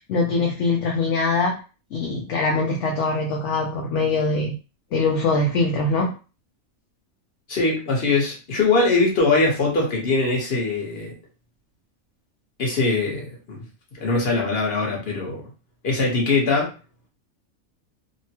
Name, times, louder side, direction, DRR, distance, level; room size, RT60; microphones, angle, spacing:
voice 1, 0.0-1.6 1.9-4.6 4.9-6.1, left 3 dB, 65° left, 0 dB, 0.8 m, -23 dB
voice 2, 7.5-11.1 12.6-13.6 14.0-15.4 15.8-16.7, left 3 dB, 50° left, -2 dB, 1.2 m, -22 dB
3.1 x 2.1 x 2.8 m, 0.32 s
omnidirectional pair, 1.5 m